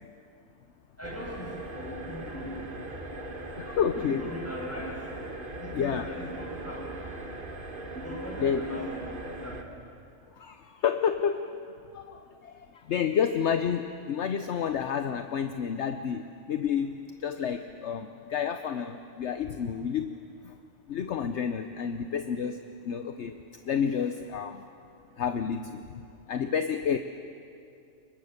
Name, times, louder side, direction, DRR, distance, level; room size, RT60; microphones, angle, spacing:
voice 1, 1.0-2.6 3.8-5.0 5.6-7.0 7.9-9.6, left 1 dB, 10° left, -3 dB, 6.6 m, -39 dB
sound 1, 1.0-9.6, right 1 dB, 40° right, 1.7 m, -40 dB
voice 2, 3.6-4.3 5.7-6.1 8.4-8.7 10.4-11.5 11.9-20.1 20.4-20.5 20.9-23.4 23.6-24.6 25.2-27.0, left 7 dB, 60° left, 8 dB, 1.1 m, -30 dB
29.0 x 24.0 x 6.6 m, 2.5 s
omnidirectional pair, 1.3 m